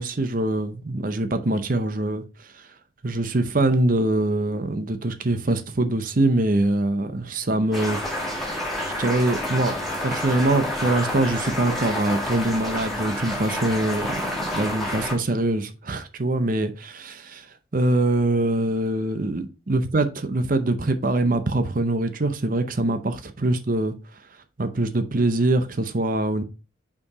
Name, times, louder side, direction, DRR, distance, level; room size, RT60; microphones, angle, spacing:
voice 1, 0.0-2.7 3.0-8.3 8.8-9.7 10.0-23.9 24.6-26.4, right 2 dB, 45° right, 0.6 m, -24 dB
sound 1, 7.7-15.1, left 1 dB, ahead, 2.1 m, -29 dB
5.7 x 4.6 x 4.7 m
head